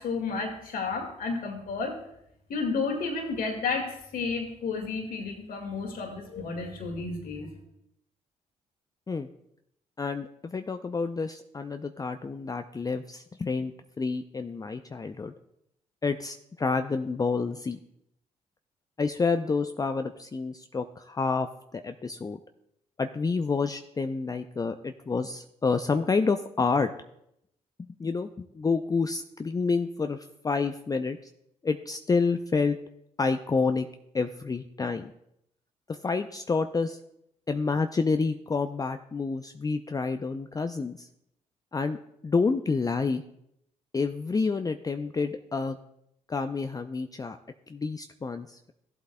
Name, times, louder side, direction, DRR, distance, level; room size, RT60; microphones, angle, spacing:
voice 1, 0.0-2.0 2.5-7.5, left 4 dB, 65° left, 2 dB, 1.9 m, -32 dB
voice 2, 10.0-15.3 16.0-17.8 19.0-22.4 23.0-26.9 28.0-31.2 31.6-32.8 33.2-33.9 34.1-35.1 35.9-37.0 37.5-41.1 41.7-43.2 43.9-45.8 46.3-47.4 47.7-48.7, left 4 dB, 25° left, 8 dB, 0.5 m, -29 dB
15.0 x 8.0 x 2.2 m, 0.78 s
hypercardioid pair, 45°, 16 cm